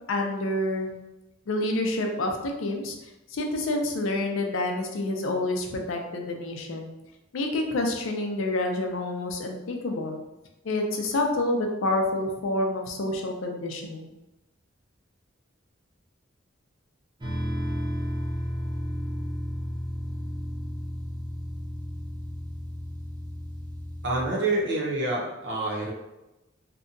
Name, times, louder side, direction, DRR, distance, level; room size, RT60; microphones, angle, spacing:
voice 1, 0.1-0.9 1.5-2.9 3.3-6.9 7.3-10.2 10.6-14.1, left 2 dB, 85° left, 3 dB, 0.5 m, -28 dB
sound 1, 17.2-24.3, equal, 20° right, 0.5 m, -33 dB
voice 2, 24.0-25.9, right 2 dB, 60° right, -3 dB, 0.7 m, -27 dB
2.7 x 2.3 x 2.6 m, 0.98 s
head